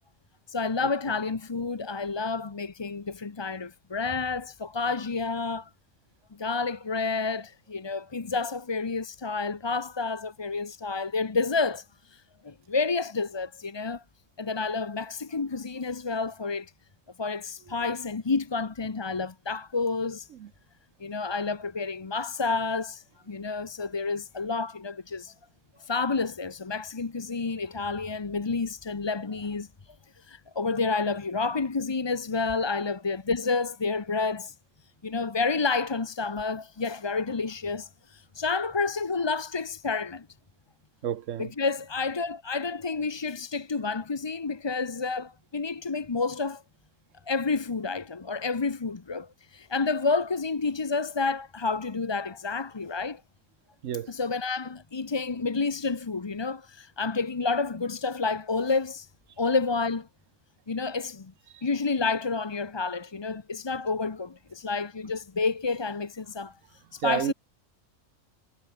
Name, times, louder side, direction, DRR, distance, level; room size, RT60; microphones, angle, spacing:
voice 1, 0.5-5.7 6.4-14.0 14.4-16.7 17.2-20.3 21.0-25.3 25.8-29.7 30.2-34.5 35.0-40.3 41.4-46.6 47.3-53.2 54.1-59.1 59.4-60.1 60.7-61.3 61.6-66.6 66.9-67.3, left 4 dB, 25° left, 0.7 m, -29 dB
voice 2, 41.0-41.5 53.8-54.1 61.5-61.6 67.0-67.3, right 10 dB, 75° right, 1.2 m, -30 dB
omnidirectional pair, 1.4 m